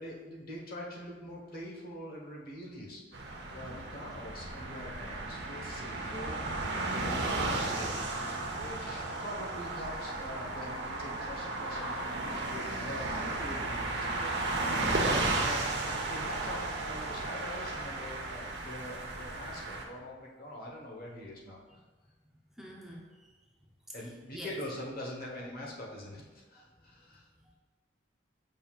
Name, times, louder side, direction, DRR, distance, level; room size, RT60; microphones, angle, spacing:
voice 1, 0.0-3.2 3.5-21.6 23.9-26.2 26.5-27.3, left 1 dB, 50° left, -2 dB, 1.2 m, -44 dB
sound 1, 3.1-19.8, right 2 dB, 65° right, 0.8 m, -34 dB
voice 2, 22.5-23.4 23.9-24.6 26.6-27.5, equal, ahead, -2 dB, 0.5 m, -49 dB
7.2 x 5.4 x 2.4 m, 1.4 s
head